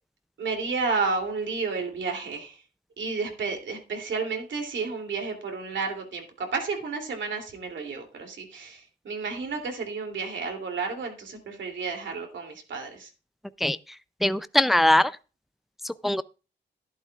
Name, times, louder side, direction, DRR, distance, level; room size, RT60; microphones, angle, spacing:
voice 1, 0.4-2.6 3.0-13.1, right 4 dB, 75° right, 3.0 m, -31 dB
voice 2, 14.2-15.2 15.8-16.2, left 1 dB, ahead, 0.5 m, -21 dB
12.0 x 11.0 x 2.4 m
cardioid pair, 90°, 20 cm